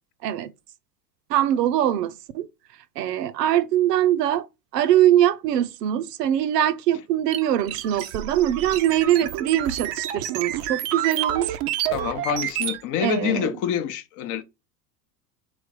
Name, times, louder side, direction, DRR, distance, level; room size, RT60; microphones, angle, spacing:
voice 1, 1.3-4.5 4.7-11.6 13.0-13.6, right 11 dB, 75° right, 0.6 m, -22 dB
sound 1, 7.3-12.8, right 12 dB, 35° right, 0.4 m, -29 dB
voice 2, 11.9-14.4, left 10 dB, 40° left, 0.6 m, -27 dB
3.2 x 3.1 x 4.7 m
hypercardioid pair, 90°, 49 cm